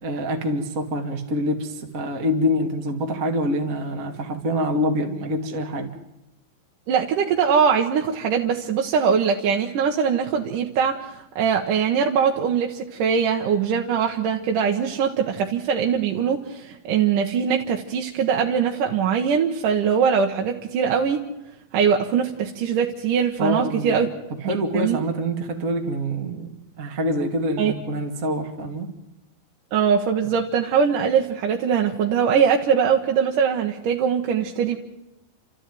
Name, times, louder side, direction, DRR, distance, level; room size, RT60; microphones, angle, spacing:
voice 1, 0.0-5.9 23.4-24.0 24.4-28.9, equal, 30° right, 3 dB, 2.0 m, -26 dB
voice 2, 6.9-21.2 21.7-24.1 24.4-25.0 27.6-27.7 29.7-34.8, right 7 dB, 65° right, 1 dB, 2.6 m, -22 dB
29.5 x 13.5 x 9.3 m, 0.91 s
omnidirectional pair, 4.5 m